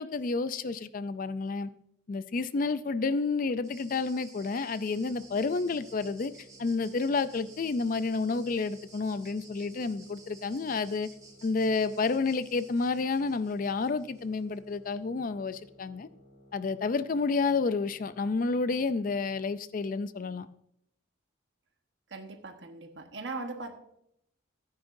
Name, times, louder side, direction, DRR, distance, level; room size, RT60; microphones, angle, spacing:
voice 1, 0.0-1.7 2.1-6.3 6.6-11.1 11.4-16.1 16.5-20.5, left 4 dB, 40° left, 0.4 m, -30 dB
sound 1, 3.6-14.6, right 3 dB, 15° right, 1.9 m, -55 dB
sound 2, 5.0-19.6, equal, 75° left, 3.4 m, -58 dB
voice 2, 22.1-23.7, right 3 dB, 60° right, 1.2 m, -39 dB
15.0 x 9.7 x 2.6 m
head